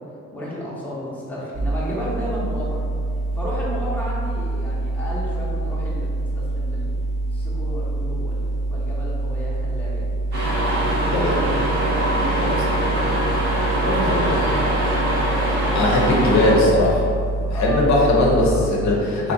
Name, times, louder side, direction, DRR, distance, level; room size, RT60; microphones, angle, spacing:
voice 1, 0.3-2.8 3.3-7.0 7.3-10.1 11.0-11.6 12.1-12.8 13.6-14.2 17.5-17.8, equal, 5° left, -7 dB, 0.7 m, -32 dB
sound 1, 1.5-18.5, right 2 dB, 25° right, 0.4 m, -26 dB
sound 2, 10.3-16.5, right 1 dB, 80° right, 1.5 m, -23 dB
Wind instrument woodwind instrument, 11.4-15.8, left 4 dB, 30° left, 0.9 m, -38 dB
voice 2, 15.7-17.0 17.5-19.3, left 2 dB, 65° left, -3 dB, 0.7 m, -19 dB
2.9 x 2.5 x 3.7 m, 2.3 s
cardioid pair, 120°, 30 cm